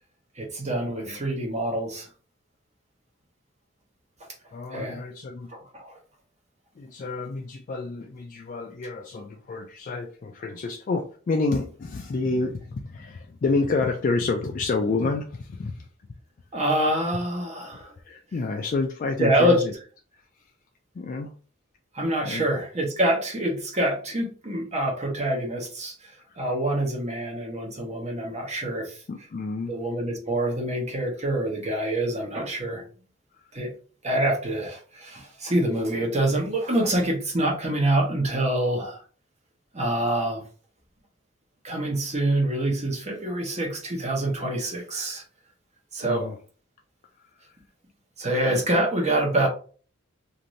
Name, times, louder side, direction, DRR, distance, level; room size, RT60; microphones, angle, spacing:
voice 1, 0.4-2.1 4.7-5.0 5.7-5.9 16.5-17.9 19.2-19.6 21.9-26.1 26.4-29.0 29.7-32.8 33.5-33.7 34.0-39.0 39.7-40.4 41.6-45.2 45.9-46.2 48.2-49.5, right 1 dB, 35° right, 1 dB, 0.9 m, -26 dB
voice 2, 0.9-1.2 4.5-5.5 6.8-15.9 18.1-19.7 21.0-21.3 22.2-22.4 26.3-26.4 29.1-29.7 46.0-46.4, left 3 dB, 40° left, 3 dB, 0.3 m, -29 dB
2.6 x 2.6 x 3.0 m, 0.40 s
head